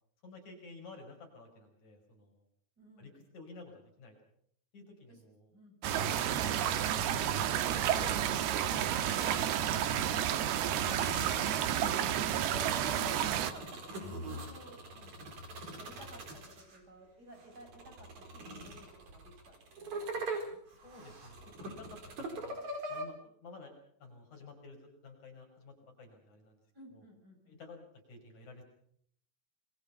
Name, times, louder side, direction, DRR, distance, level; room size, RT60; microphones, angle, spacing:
voice 1, 0.2-2.4 3.0-4.1 4.7-5.5 6.4-8.9 9.8-11.1 20.7-22.6 22.9-23.7 24.0-26.6 26.9-27.0 27.5-27.8 28.1-28.6, left 3 dB, 50° left, 3 dB, 6.7 m, -53 dB
voice 2, 2.8-3.1 5.1-5.2 5.5-6.4 11.8-15.3 15.8-20.6 26.7-27.6, right 1 dB, 25° right, 2 dB, 7.2 m, -52 dB
sound 1, 5.8-13.5, right 10 dB, 80° right, 3.3 m, -31 dB
sound 2, 6.0-6.6 7.6-8.4 8.8-10.1 10.5-16.8 17.3-23.0, right 2 dB, 50° right, 5.7 m, -43 dB
27.5 x 23.0 x 5.8 m, 0.65 s
omnidirectional pair, 4.5 m